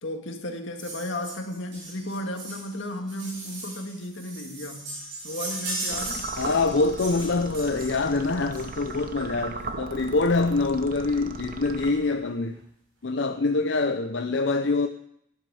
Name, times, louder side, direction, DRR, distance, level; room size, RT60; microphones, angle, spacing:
voice 1, 0.0-5.0 5.2-6.3, left 1 dB, 90° left, 4 dB, 1.8 m, -34 dB
sound 1, 0.8-9.1 10.2-10.3 10.6-10.7 10.9-11.1 11.4-12.0 12.5-12.6, right 2 dB, 85° right, 6.0 m, -38 dB
sound 2, 5.9-12.4, right 3 dB, 45° right, 0.8 m, -38 dB
voice 2, 6.4-12.6 13.0-14.9, left 3 dB, 70° left, 6 dB, 0.6 m, -25 dB
12.0 x 10.5 x 4.9 m, 0.72 s
head